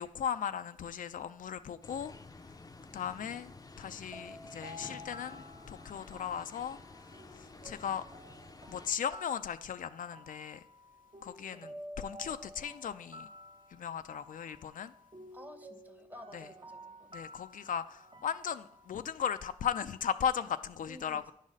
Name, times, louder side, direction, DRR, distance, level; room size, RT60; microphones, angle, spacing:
voice 1, 0.0-2.1 2.9-3.5 3.8-6.8 7.3-8.0 8.7-10.6 11.2-13.3 13.7-14.9 16.3-16.4 17.1-21.3, left 8 dB, 80° left, 0.4 m, -37 dB
sound 1, 1.8-8.9, left 3 dB, 25° left, 0.5 m, -51 dB
sound 2, 4.1-19.2, left 1 dB, 40° right, 1.0 m, -52 dB
voice 2, 15.3-17.3 20.8-21.3, left 1 dB, 10° right, 1.0 m, -53 dB
9.7 x 4.0 x 6.3 m
cardioid pair, 60°, 14 cm